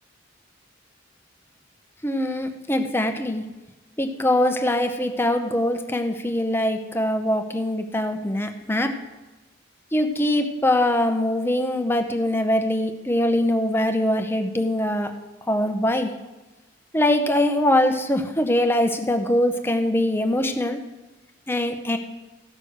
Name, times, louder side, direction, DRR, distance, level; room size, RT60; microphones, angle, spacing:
voice 1, 2.0-3.4 4.0-8.9 9.9-15.1 15.5-16.1 16.9-20.8 21.5-22.0, left 1 dB, 10° left, 6 dB, 0.8 m, -22 dB
15.0 x 6.3 x 6.3 m, 1.1 s
head